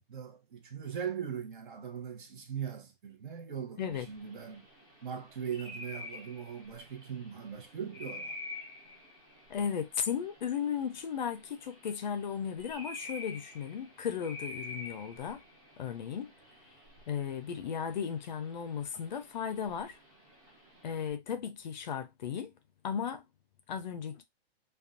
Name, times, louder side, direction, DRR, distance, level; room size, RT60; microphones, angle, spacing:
voice 1, 0.0-4.7 5.0-8.4, right 8 dB, 55° right, 0.9 m, -40 dB
sound 1, 3.9-21.1, left 2 dB, 10° right, 0.5 m, -49 dB
voice 2, 9.5-15.4 15.8-16.3 17.1-20.0 20.8-22.5 22.8-23.2 23.7-24.2, left 7 dB, 45° left, 0.4 m, -35 dB
2.5 x 2.2 x 2.4 m
hypercardioid pair, 165°, 31 cm